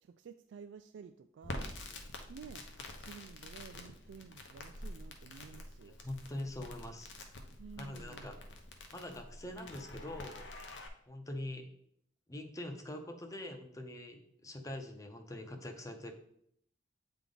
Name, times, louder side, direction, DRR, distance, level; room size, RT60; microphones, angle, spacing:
voice 1, 0.0-1.7 2.3-2.7 3.0-5.9 7.6-8.3, right 6 dB, 80° right, 8 dB, 0.3 m, -52 dB
Crackle, 1.4-10.9, left 1 dB, 80° left, 0.8 m, -47 dB
voice 2, 5.8-7.1 7.8-8.4 8.9-10.5 11.1-11.7 12.3-16.1, left 1 dB, 20° left, 6 dB, 0.6 m, -44 dB
8.1 x 3.5 x 3.8 m, 0.70 s
head